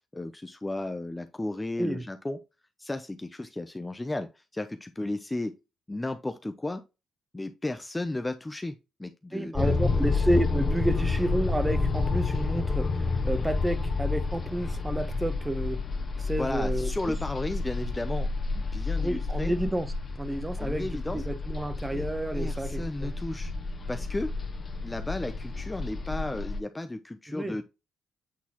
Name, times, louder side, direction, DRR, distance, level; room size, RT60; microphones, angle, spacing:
voice 1, 0.1-2.4 2.8-5.5 5.9-6.8 7.3-10.1 16.4-18.3 18.5-19.5 20.6-21.2 21.9-22.1 22.3-23.5 23.9-24.3 24.8-27.6, left 2 dB, 15° left, 0.5 m, -34 dB
voice 2, 9.3-15.8 16.2-17.1 19.0-23.1 27.3-27.6, right 1 dB, 15° right, 0.8 m, -30 dB
sound 1, 9.5-26.6, left 3 dB, 35° left, 1.2 m, -30 dB
8.4 x 3.9 x 2.9 m
cardioid pair, 90°, 0 cm